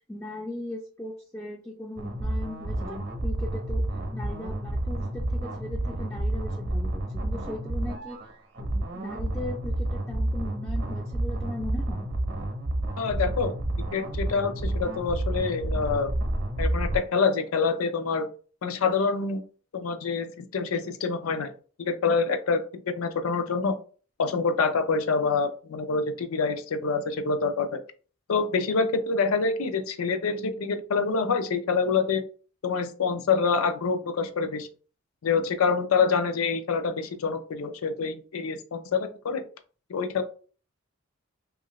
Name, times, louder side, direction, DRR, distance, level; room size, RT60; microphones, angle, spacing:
voice 1, 0.1-3.9 4.1-8.2 8.6-12.1, left 1 dB, 10° left, -1 dB, 0.3 m, -38 dB
sound 1, 2.0-17.0, right 1 dB, 50° right, 0.7 m, -30 dB
voice 2, 13.0-13.5 13.9-16.1 16.6-18.3 18.6-19.4 19.7-21.5 21.8-23.8 24.2-27.8 28.3-32.2 32.6-34.7 35.2-39.4 39.9-40.2, left 5 dB, 85° left, 9 dB, 0.4 m, -26 dB
2.7 x 2.4 x 3.0 m, 0.39 s
head